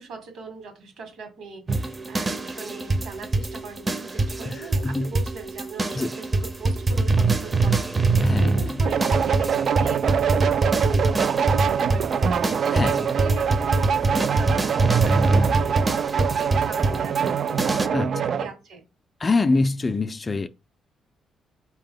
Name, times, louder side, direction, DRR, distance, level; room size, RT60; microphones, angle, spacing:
voice 1, 0.0-18.8, right 3 dB, 70° right, 1.7 m, -40 dB
sound 1, 1.7-17.9, right 2 dB, 25° right, 0.6 m, -24 dB
voice 2, 4.5-5.1 5.9-6.1 8.2-8.9 12.7-13.0 17.9-18.1 19.2-20.5, left 3 dB, 25° left, 0.4 m, -24 dB
sound 2, 8.8-18.5, right 8 dB, 55° right, 0.3 m, -24 dB
4.7 x 2.9 x 3.8 m
cardioid pair, 90°, 0 cm